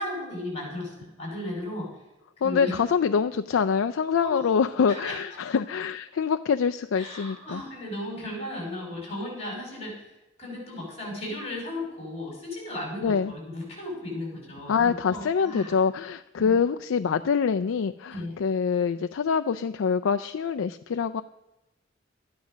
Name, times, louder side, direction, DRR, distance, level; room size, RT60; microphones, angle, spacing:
voice 1, 0.0-1.9 2.4-2.7 4.2-4.5 4.9-5.2 7.0-10.0 10.4-15.7 16.4-16.6 18.1-18.3, left 1 dB, 35° left, -1 dB, 5.1 m, -35 dB
voice 2, 2.4-7.6 13.0-13.3 14.7-21.2, left 6 dB, 80° left, 8 dB, 0.4 m, -25 dB
12.5 x 9.5 x 6.2 m, 0.99 s
head